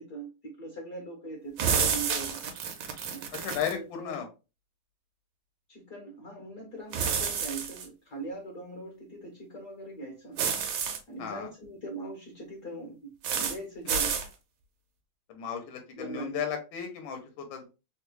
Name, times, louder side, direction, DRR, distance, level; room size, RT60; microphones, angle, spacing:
voice 1, 0.0-2.4 3.1-4.2 5.7-10.4 11.1-14.1 15.9-16.4, right 2 dB, 55° left, 1.2 m, -41 dB
sound 1, 1.6-3.8 6.9-7.9 10.4-11.0 13.2-13.6 13.9-14.3, right 6 dB, 70° right, 1.1 m, -29 dB
voice 2, 3.4-4.3 11.2-11.5 15.3-17.7, left 8 dB, 75° left, 1.4 m, -35 dB
3.5 x 2.3 x 3.0 m
omnidirectional pair, 2.3 m